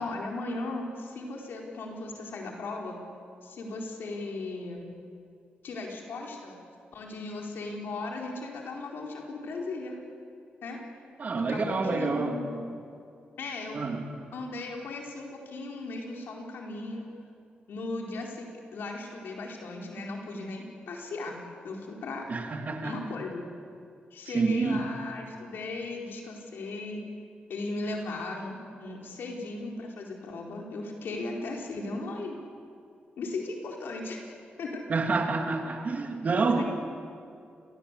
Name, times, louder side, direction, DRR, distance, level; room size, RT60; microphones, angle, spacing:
voice 1, 0.0-3.0 3.4-4.9 5.6-6.5 6.9-10.0 10.6-10.8 11.5-12.6 13.4-13.8 14.3-17.1 17.7-21.4 21.6-22.3 22.8-23.4 24.1-27.0 27.5-32.4 33.2-34.3 34.6-34.8 36.6-36.7, left 2 dB, 85° left, 0 dB, 4.4 m, -37 dB
voice 2, 11.2-12.4 13.7-14.0 22.3-22.9 24.3-24.8 34.9-36.6, right 4 dB, 50° right, 4 dB, 3.1 m, -27 dB
28.0 x 20.0 x 8.4 m, 2.3 s
cardioid pair, 100°, 4 cm